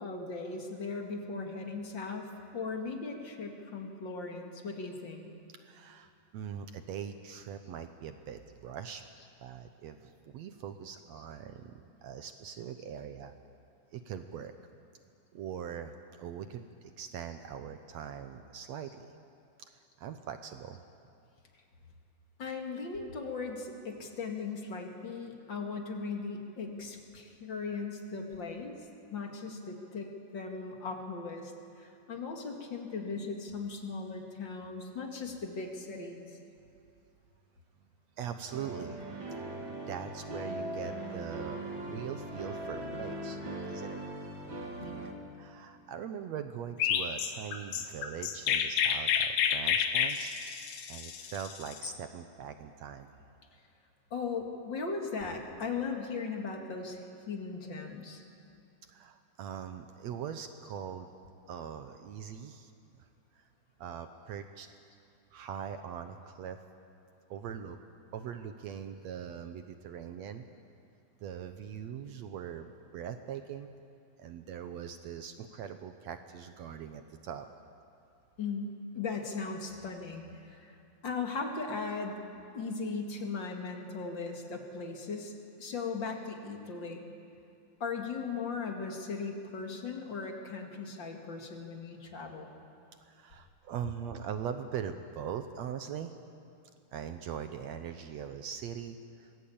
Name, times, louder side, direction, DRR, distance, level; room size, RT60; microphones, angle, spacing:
voice 1, 0.0-5.3 22.4-28.8 29.1-31.5 31.8-36.2 44.8-45.2 54.1-57.0 57.3-58.2 78.4-80.7 81.0-82.2 82.5-87.0 87.8-92.5, left 4 dB, 35° left, 2 dB, 2.3 m, -38 dB
voice 2, 5.5-9.0 9.4-11.7 12.0-13.3 13.9-14.5 15.3-19.1 20.0-20.8 38.2-39.0 39.7-43.4 43.7-44.0 45.4-50.3 50.9-53.1 58.9-61.1 61.5-62.7 63.8-64.7 65.3-66.6 67.3-67.8 68.1-70.4 71.2-73.7 74.2-77.5 93.0-96.1 96.9-99.3, right 8 dB, 75° right, 8 dB, 1.6 m, -41 dB
sound 1, 38.5-45.1, right 1 dB, 40° right, 2.7 m, -40 dB
Chirp tweet, 46.8-51.9, left 8 dB, 70° left, 2.7 m, -30 dB
25.5 x 20.0 x 8.6 m, 2.5 s
omnidirectional pair, 4.1 m